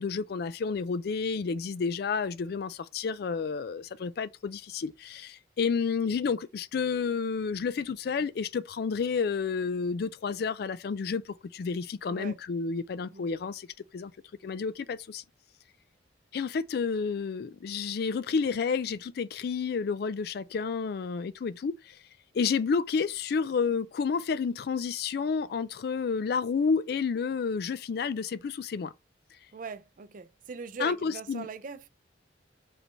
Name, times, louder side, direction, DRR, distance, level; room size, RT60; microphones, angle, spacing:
voice 1, 0.0-13.7 13.9-14.1 14.4-15.2 16.3-22.0 22.3-28.9 30.8-31.5, left 5 dB, 55° left, 0.3 m, -30 dB
voice 2, 12.1-12.4 13.1-13.3 29.5-31.9, right 4 dB, 45° right, 0.4 m, -41 dB
5.1 x 3.3 x 3.2 m
head